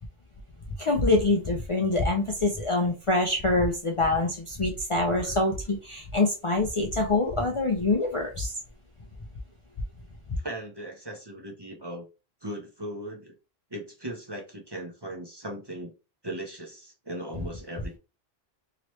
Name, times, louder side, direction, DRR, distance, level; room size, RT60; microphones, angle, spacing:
voice 1, 0.8-8.5, left 2 dB, 40° left, 0.5 m, -25 dB
voice 2, 10.4-12.1 12.4-13.3 13.7-15.9 16.2-18.0, right 1 dB, 25° right, 0.8 m, -38 dB
2.9 x 2.9 x 3.0 m
omnidirectional pair, 1.0 m